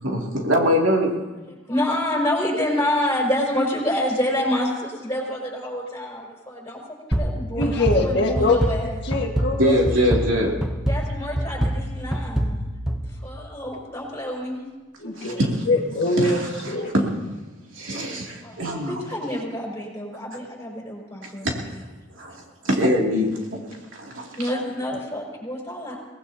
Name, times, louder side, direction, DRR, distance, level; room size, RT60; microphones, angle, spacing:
voice 1, 0.0-1.1 9.6-10.5 15.2-15.5 16.2-17.1 17.7-19.0 21.4-21.5 22.2-22.3 22.6-23.4 24.0-24.3, equal, 90° right, -1 dB, 2.7 m, -22 dB
voice 2, 1.7-6.8 7.1-9.0 10.9-12.7 13.2-14.6 18.4-21.5 24.4-26.0, left 1 dB, 15° left, -3 dB, 5.5 m, -27 dB
sound 1, 7.1-13.7, equal, 5° right, 0.8 m, -26 dB
voice 3, 7.6-8.7 9.0-9.8 15.0-16.4 16.7-16.9, left 2 dB, 60° left, 1 dB, 1.7 m, -23 dB
23.0 x 19.0 x 2.9 m, 1.2 s
head